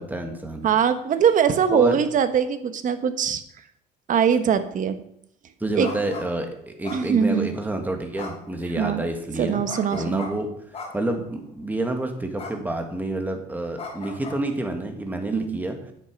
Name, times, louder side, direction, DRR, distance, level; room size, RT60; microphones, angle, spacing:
voice 1, 0.0-0.7 1.7-2.0 5.6-9.6 9.9-10.5 10.9-15.8, right 1 dB, 10° right, 4 dB, 1.9 m, -28 dB
voice 2, 0.6-3.4 4.1-5.0 5.8-5.9 6.9-7.5 8.8-9.0 9.4-10.4 15.3-15.6, right 7 dB, 50° right, 10 dB, 1.1 m, -22 dB
sound 1, 5.8-6.2 6.8-7.5 8.1-8.5 9.7-10.3 10.7-11.2 12.4-12.6 12.9-13.1 13.8-14.4, left 4 dB, 35° left, 4.3 m, -37 dB
9.7 x 7.8 x 5.3 m, 0.73 s
cardioid pair, 110°, 17 cm